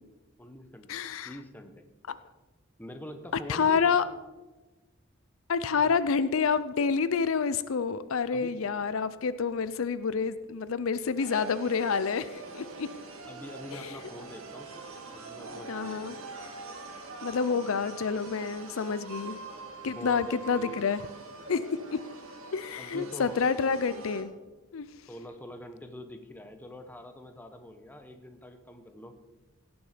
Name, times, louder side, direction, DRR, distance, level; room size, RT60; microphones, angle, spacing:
voice 1, 0.4-0.9 1.2-1.8 2.8-4.0 5.8-5.9 8.3-8.5 13.2-14.7 15.1-16.3 17.3-17.8 19.8-20.8 22.8-23.4 25.1-29.2, equal, 10° left, 7 dB, 0.9 m, -45 dB
voice 2, 0.9-1.3 3.5-4.0 5.5-12.9 13.7-14.0 15.7-16.1 17.2-19.4 19.8-21.0 21.5-21.6 21.9-22.0 22.5-24.3 24.7-24.8, left 5 dB, 70° left, 14 dB, 0.5 m, -28 dB
sound 1, 11.2-24.2, right 3 dB, 85° right, 1.9 m, -44 dB
16.5 x 7.1 x 5.0 m, 1.2 s
head